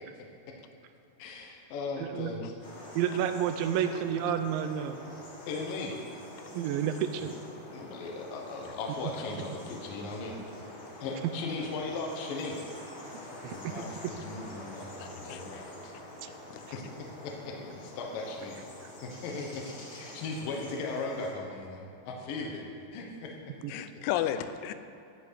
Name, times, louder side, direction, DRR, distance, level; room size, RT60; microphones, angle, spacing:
voice 1, 1.2-2.5 5.5-5.9 7.2-7.3 7.7-10.4 11.0-12.7 13.5-16.0 16.7-16.8 17.2-18.6 19.0-22.7 22.9-23.3, left 3 dB, 70° left, 0 dB, 2.2 m, -38 dB
voice 2, 2.0-2.3 3.0-5.0 6.5-7.3 13.4-13.8 18.8-18.9 23.6-23.7, right 9 dB, 85° right, 8 dB, 2.7 m, -30 dB
sound 1, 2.6-21.3, left 1 dB, 50° left, 1.6 m, -46 dB
voice 3, 15.0-15.6 16.5-16.6 23.7-24.7, left 11 dB, 85° left, 11 dB, 3.0 m, -33 dB
13.0 x 6.1 x 8.3 m, 2.7 s
omnidirectional pair, 5.6 m